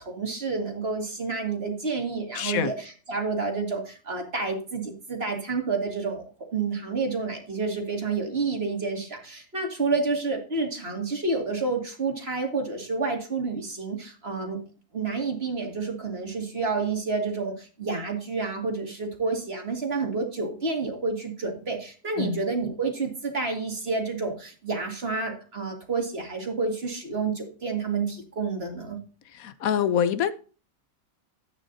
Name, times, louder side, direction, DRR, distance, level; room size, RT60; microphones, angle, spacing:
voice 1, 0.0-6.3 6.5-14.6 14.9-29.0, right 4 dB, 45° right, 2.5 m, -29 dB
voice 2, 2.3-2.7 22.2-22.4 29.3-30.3, left 8 dB, 75° left, 1.1 m, -25 dB
12.0 x 9.0 x 2.6 m
omnidirectional pair, 1.5 m